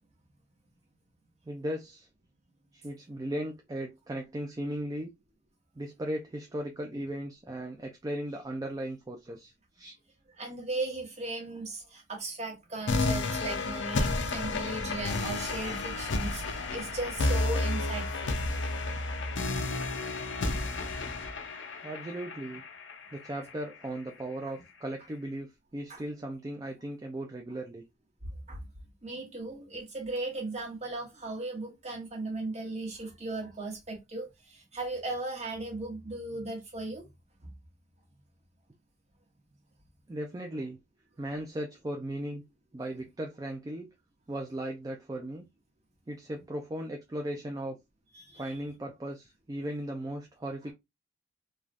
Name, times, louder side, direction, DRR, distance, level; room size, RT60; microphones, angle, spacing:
voice 1, 1.5-2.1 2.7-5.1 5.8-10.0 21.8-22.6 23.1-27.8 40.1-40.8 41.2-42.4 42.7-43.9 44.3-45.5 46.1-47.8 48.4-50.7, right 1 dB, 20° right, 0.3 m, -37 dB
voice 2, 10.4-18.4 25.9-26.0 28.5-28.6 29.0-37.1 37.4-37.5 48.1-48.6, right 2 dB, 35° right, 1.1 m, -37 dB
sound 1, 12.9-23.9, left 2 dB, 65° left, 0.5 m, -31 dB
3.2 x 2.3 x 2.4 m
head